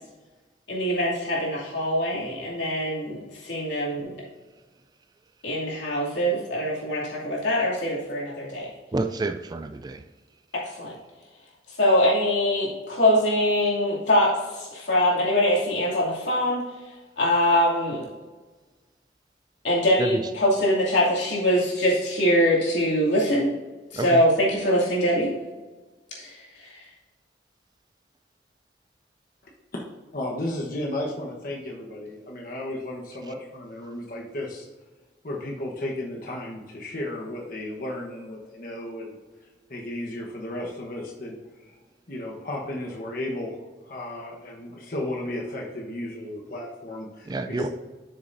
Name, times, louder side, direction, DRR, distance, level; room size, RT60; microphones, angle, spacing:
voice 1, 0.7-4.2 5.4-8.7 10.5-10.9 11.7-16.6 17.2-18.1 19.6-23.6 23.9-25.4 26.2-26.8, equal, 80° left, -5 dB, 2.6 m, -23 dB
voice 2, 8.9-10.0 20.0-20.2 23.9-24.2 47.3-47.7, right 3 dB, 20° right, 8 dB, 0.3 m, -29 dB
voice 3, 30.1-34.7 35.2-39.2 39.7-41.7 42.1-47.7, left 1 dB, 50° left, -1 dB, 1.2 m, -34 dB
12.0 x 6.7 x 2.7 m, 1.3 s
head